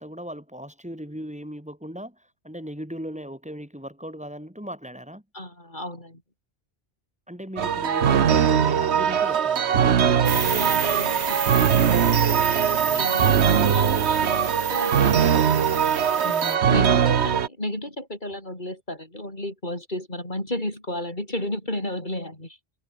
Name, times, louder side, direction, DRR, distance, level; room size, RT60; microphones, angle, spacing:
voice 1, 0.0-5.2 7.3-10.0 12.8-13.8 16.2-16.6, equal, 5° right, 4.9 m, -38 dB
voice 2, 5.3-6.2 10.2-11.6 12.9-15.9 16.2-22.6, left 1 dB, 45° left, 7.0 m, -33 dB
sound 1, 7.6-17.5, right 8 dB, 85° right, 1.3 m, -21 dB
sound 2, 10.2-16.6, right 5 dB, 40° right, 1.1 m, -31 dB
omnidirectional pair, 1.1 m